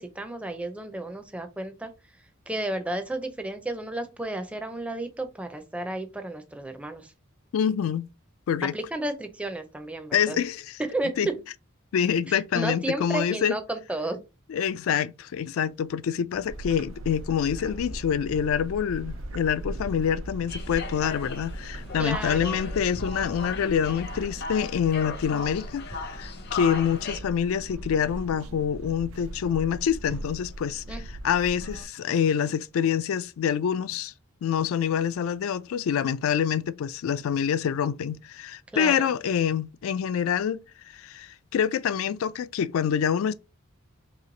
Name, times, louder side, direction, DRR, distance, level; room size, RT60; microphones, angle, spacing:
voice 1, 0.0-1.9 2.5-7.1 8.7-10.4 10.8-11.1 12.3-14.2 22.0-22.6 30.9-31.0 38.7-39.1, right 1 dB, 5° right, 0.4 m, -32 dB
voice 2, 7.5-8.1 8.5-8.8 10.1-10.8 11.2-11.3 11.9-13.6 14.5-31.0 31.2-34.1 34.4-40.6 40.9-43.3, left 8 dB, 75° left, 0.3 m, -26 dB
sound 1, 16.3-24.3, right 1 dB, 65° right, 0.9 m, -44 dB
sound 2, 16.5-31.9, right 1 dB, 90° right, 0.5 m, -39 dB
sound 3, 20.5-27.2, left 4 dB, 50° left, 0.7 m, -37 dB
3.1 x 3.0 x 3.8 m
head